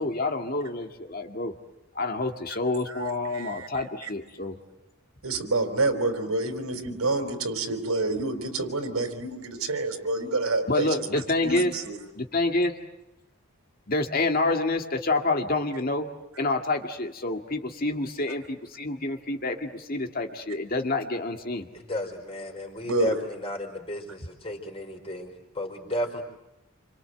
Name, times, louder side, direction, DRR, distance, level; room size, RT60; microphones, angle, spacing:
voice 1, 0.0-1.5 2.0-4.6 10.7-11.7 12.2-12.7 13.9-16.1 16.4-21.7, left 2 dB, 40° left, 4 dB, 2.0 m, -28 dB
voice 2, 3.3-3.7 4.0-4.1 5.2-12.0 22.8-23.2, right 3 dB, 85° right, 7 dB, 4.4 m, -28 dB
voice 3, 21.8-26.2, left 1 dB, 25° left, 4 dB, 4.6 m, -33 dB
28.5 x 26.5 x 7.9 m, 0.93 s
head